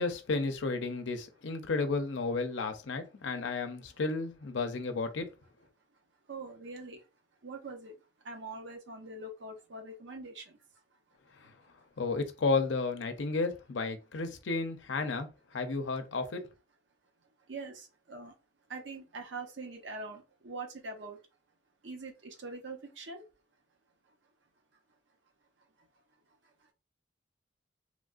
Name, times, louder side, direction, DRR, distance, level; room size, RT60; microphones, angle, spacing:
voice 1, 0.0-5.2 11.4-11.5 12.0-15.3 15.5-16.4, left 3 dB, 80° left, 0.6 m, -32 dB
voice 2, 6.3-7.1 7.4-7.9 8.2-10.6 17.5-18.3 18.7-21.2 21.8-23.2, right 3 dB, 75° right, 0.7 m, -43 dB
3.2 x 2.4 x 2.4 m
head